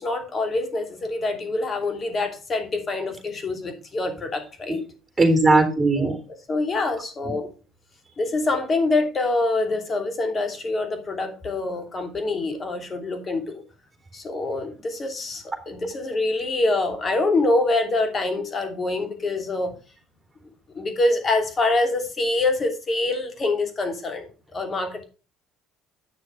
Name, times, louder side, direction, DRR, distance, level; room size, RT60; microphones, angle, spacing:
voice 1, 0.0-4.8 6.0-6.1 6.5-7.5 8.2-13.6 14.1-19.7 20.7-25.0, left 2 dB, 35° left, 5 dB, 2.9 m, -25 dB
voice 2, 5.2-6.1, right 2 dB, 20° right, 6 dB, 3.7 m, -18 dB
9.2 x 6.5 x 4.7 m, 0.34 s
supercardioid pair, 75°, 0 cm